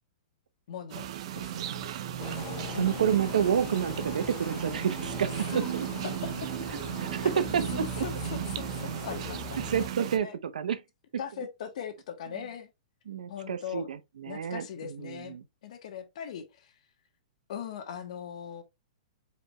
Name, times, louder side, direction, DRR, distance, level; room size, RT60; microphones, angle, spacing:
voice 1, 0.7-1.1 1.3-1.9 2.7-3.2 5.5-6.5 7.2-7.4 7.7-10.4 11.2-12.7 13.3-13.9 14.3-15.4 15.6-16.7 17.5-18.6, left 8 dB, 60° left, 1.3 m, -40 dB
sound 1, 0.9-10.2, right 10 dB, 50° right, 0.6 m, -35 dB
voice 2, 1.7-5.9 6.7-8.0 9.6-10.8 13.1-15.4, right 8 dB, 85° right, 0.8 m, -30 dB
sound 2, 2.2-9.9, left 8 dB, 30° left, 0.8 m, -42 dB
5.0 x 4.5 x 2.3 m
hypercardioid pair, 160°, 4 cm